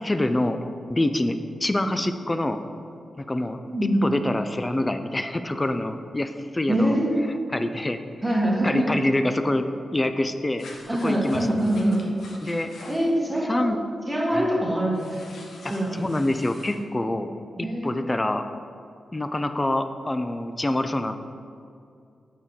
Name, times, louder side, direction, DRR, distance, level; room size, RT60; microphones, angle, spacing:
voice 1, 0.0-0.6 0.9-1.4 1.6-2.6 3.2-6.9 7.5-8.0 8.6-9.7 9.9-10.7 11.0-11.6 12.4-12.7 13.5-13.8 14.3-14.5 15.9-18.4 19.1-21.1, left 1 dB, 15° left, 8 dB, 0.3 m, -26 dB
voice 2, 3.7-4.1 6.7-7.1 8.2-8.9 10.9-12.0 12.9-13.7 14.1-15.4 15.7-16.1 17.6-18.0, right 1 dB, 10° right, -3 dB, 1.3 m, -24 dB
sound 1, 10.6-13.1 14.9-16.8, left 2 dB, 75° left, 1.0 m, -44 dB
8.6 x 5.5 x 3.6 m, 2.5 s
wide cardioid pair, 155°, 0 cm